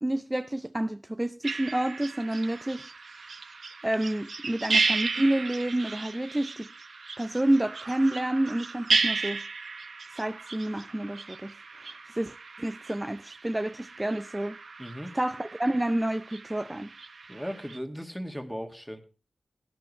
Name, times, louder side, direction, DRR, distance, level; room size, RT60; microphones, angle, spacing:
voice 1, 0.0-2.9 3.8-6.7 7.2-9.4 10.2-11.5 11.9-14.5 15.1-16.9, right 1 dB, 15° right, 0.6 m, -29 dB
sound 1, 1.4-17.8, right 4 dB, 65° right, 0.9 m, -34 dB
voice 2, 14.8-15.2 17.3-19.0, equal, ahead, 2.2 m, -37 dB
18.0 x 10.5 x 3.3 m
cardioid pair, 45°, 0 cm